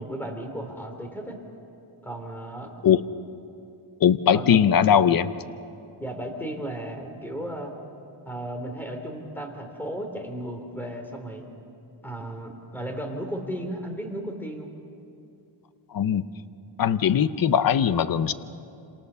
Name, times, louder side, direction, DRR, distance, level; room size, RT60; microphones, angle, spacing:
voice 1, 0.0-1.4 2.0-2.7 4.3-4.7 6.0-7.7 8.2-11.4 12.0-14.7, right 1 dB, 5° left, 4 dB, 3.4 m, -35 dB
voice 2, 4.0-5.3 15.9-16.3 16.8-18.3, left 8 dB, 45° left, 13 dB, 0.8 m, -20 dB
29.0 x 27.5 x 6.9 m, 2.7 s
wide cardioid pair, 145°, 50 cm